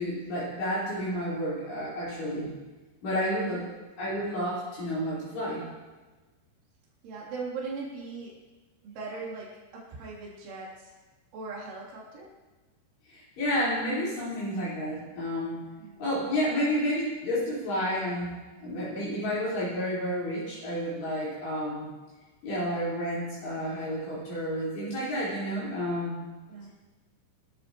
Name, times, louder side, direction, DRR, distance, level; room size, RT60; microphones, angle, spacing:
voice 1, 0.0-2.5 3.0-3.6 4.0-5.7 13.1-15.6 16.0-18.3 18.6-21.9 22.4-26.2, equal, 65° left, -9 dB, 6.6 m, -30 dB
voice 2, 7.0-8.4 8.8-10.9 11.3-12.3 15.8-16.1 26.5-26.7, right 4 dB, 80° right, -6 dB, 5.8 m, -39 dB
24.5 x 13.0 x 3.1 m, 1.2 s
omnidirectional pair, 5.4 m